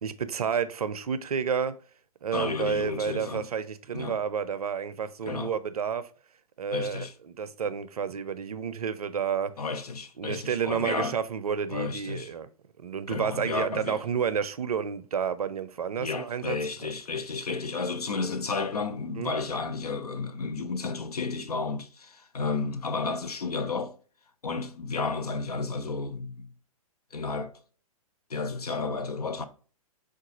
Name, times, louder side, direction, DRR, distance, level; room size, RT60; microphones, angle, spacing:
voice 1, 0.0-1.7 2.2-6.1 6.6-9.5 10.2-12.5 12.8-16.6 19.2-19.4, right 7 dB, 80° right, 0.4 m, -30 dB
voice 2, 2.3-3.5 3.9-4.2 5.3-5.5 6.7-7.1 9.6-11.2 11.7-12.3 13.1-14.0 16.0-23.9 24.4-26.5 27.1-27.5 28.3-29.4, left 4 dB, 85° left, 0.5 m, -32 dB
4.5 x 2.3 x 2.9 m
figure-of-eight pair, 115°, 19 cm